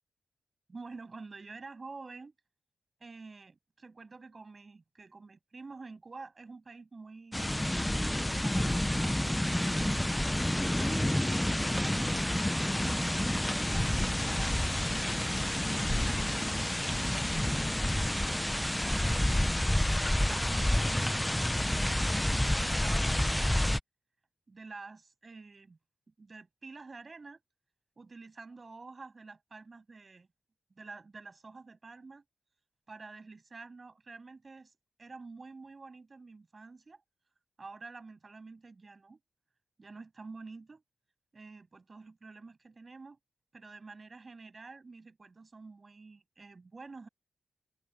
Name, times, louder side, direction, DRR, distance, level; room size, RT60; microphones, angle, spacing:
voice 1, 0.7-2.3 3.0-7.4 8.3-10.4 11.0-12.0 12.8-14.7 15.6-23.7 24.5-25.8 26.2-27.4 28.0-30.3 30.8-32.2 32.9-34.7 35.0-37.0 37.6-39.2 39.8-40.8 41.3-43.2 43.5-47.1, right 3 dB, 35° right, 7.5 m, -49 dB
sound 1, 7.3-23.8, left 1 dB, 5° left, 0.6 m, -29 dB
wide cardioid pair, 120°, 0 cm